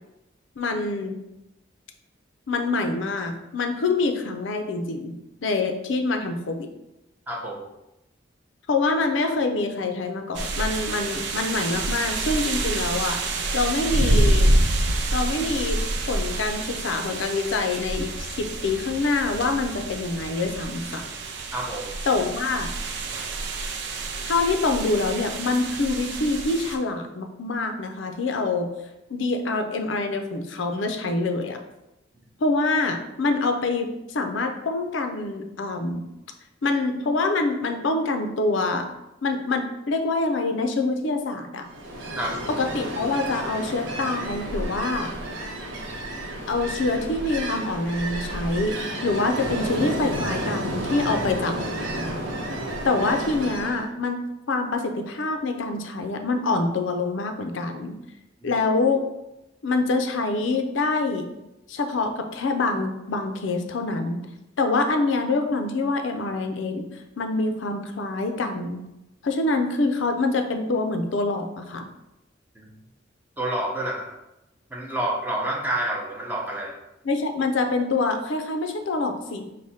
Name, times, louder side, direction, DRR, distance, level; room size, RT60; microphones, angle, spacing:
voice 1, 0.6-1.2 2.5-5.1 5.4-6.7 8.7-13.2 13.5-14.5 15.1-15.8 16.1-21.0 22.1-22.7 24.2-28.7 29.1-31.6 32.4-36.0 36.6-38.9 39.2-41.6 42.5-45.1 46.5-48.8 49.0-51.5 52.8-54.2 54.5-58.0 58.4-59.0 59.6-61.2 61.7-64.2 64.6-66.8 67.2-68.8 69.2-71.9 77.0-79.4, left 3 dB, 80° left, 6 dB, 0.5 m, -25 dB
voice 2, 7.3-7.7 21.5-22.0 42.2-42.5 72.6-72.7 73.4-74.1 74.7-76.8, right 1 dB, 10° right, -2 dB, 0.6 m, -28 dB
sound 1, 10.3-26.8, right 2 dB, 65° right, 0.5 m, -27 dB
Ocean, 41.7-53.9, right 1 dB, 85° right, 0.8 m, -31 dB
4.8 x 2.2 x 4.1 m, 0.91 s
head